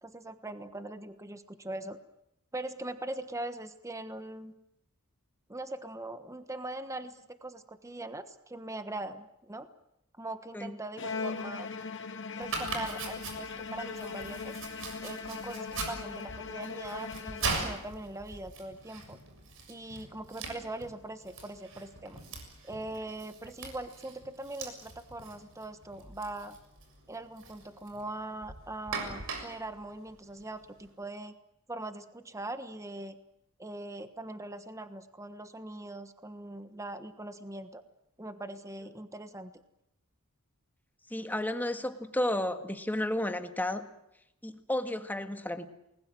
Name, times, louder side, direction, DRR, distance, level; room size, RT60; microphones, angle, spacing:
voice 1, 0.0-2.0 2.5-4.5 5.5-9.7 10.2-11.7 12.4-14.6 15.0-19.2 19.7-22.2 22.6-26.6 27.1-31.4 31.7-33.2 33.6-37.8 38.2-39.5, right 2 dB, 15° right, 10 dB, 1.3 m, -41 dB
Bowed string instrument, 11.0-17.9, left 4 dB, 55° left, 2.1 m, -39 dB
Domestic sounds home sounds, 12.4-30.9, right 4 dB, 65° right, 6.9 m, -42 dB
voice 2, 41.1-43.9 44.4-45.7, left 1 dB, 10° left, 8 dB, 1.8 m, -32 dB
29.5 x 21.0 x 7.7 m, 0.82 s
head